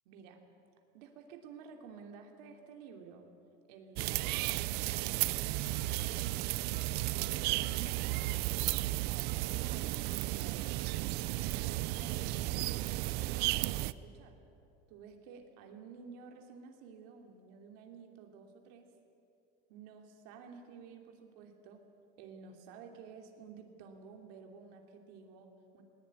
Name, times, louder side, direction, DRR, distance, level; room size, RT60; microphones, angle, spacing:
voice 1, 0.0-0.4 0.9-3.3 3.7-6.0 7.4-8.3 9.0-11.1 11.4-14.4 14.9-18.9 19.7-21.8 22.2-25.8, right 6 dB, 85° right, 3 dB, 3.0 m, -52 dB
sound 1, 4.0-13.9, right 18 dB, 55° right, 0.6 m, -34 dB
20.0 x 20.0 x 9.7 m, 2.7 s
cardioid pair, 165°, 20 cm